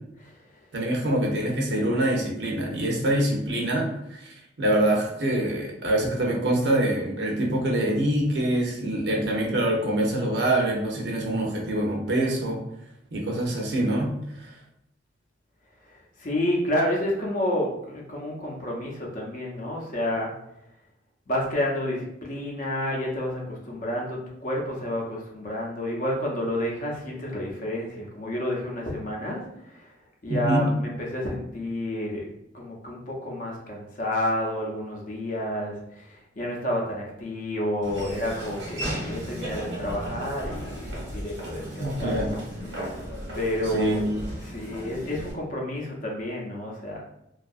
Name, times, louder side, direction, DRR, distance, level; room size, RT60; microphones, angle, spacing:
voice 1, 0.7-12.6 13.1-14.1 14.4-14.5 30.3-30.6 41.8-42.4 43.7-44.2, right 1 dB, 65° right, 0 dB, 0.6 m, -25 dB
voice 2, 16.2-20.3 21.3-29.8 30.2-32.3 32.5-42.4 43.3-47.0, left 1 dB, 45° left, -1 dB, 0.6 m, -30 dB
Laughter / Walk footsteps, 37.8-45.3, equal, 90° right, 1.0 m, -35 dB
2.6 x 2.4 x 2.4 m, 0.80 s
head